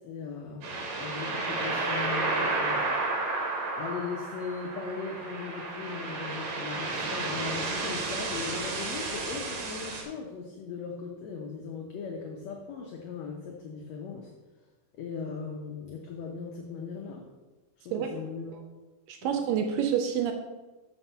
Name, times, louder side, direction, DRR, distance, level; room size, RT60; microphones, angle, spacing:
voice 1, 0.0-2.8 3.8-14.3 14.9-17.3 17.9-18.7 19.2-19.3, left 5 dB, 75° left, 1 dB, 1.6 m, -38 dB
sound 1, 0.6-10.0, right 3 dB, 60° right, 2.4 m, -32 dB
voice 2, 19.1-20.3, right 8 dB, 80° right, 5 dB, 2.2 m, -28 dB
7.0 x 5.7 x 5.5 m, 1.2 s
omnidirectional pair, 4.0 m